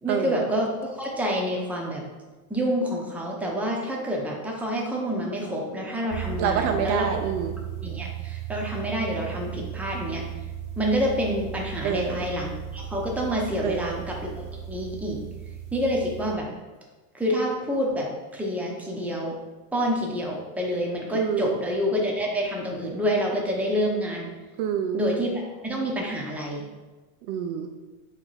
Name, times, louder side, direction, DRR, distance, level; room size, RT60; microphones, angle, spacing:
voice 1, 0.0-2.0 2.5-7.1 7.8-10.2 10.8-15.2 15.7-16.5 17.1-19.3 19.7-24.3 24.9-26.6, equal, 5° right, -2 dB, 0.7 m, -28 dB
sound 1, 6.1-16.3, right 10 dB, 90° right, 0.7 m, -36 dB
voice 2, 6.4-7.5 11.8-12.2 13.6-14.0 21.1-21.6 24.6-25.0 27.3-27.7, right 8 dB, 55° right, 5 dB, 0.5 m, -27 dB
3.5 x 3.2 x 4.0 m, 1.2 s
supercardioid pair, 110°, 45 cm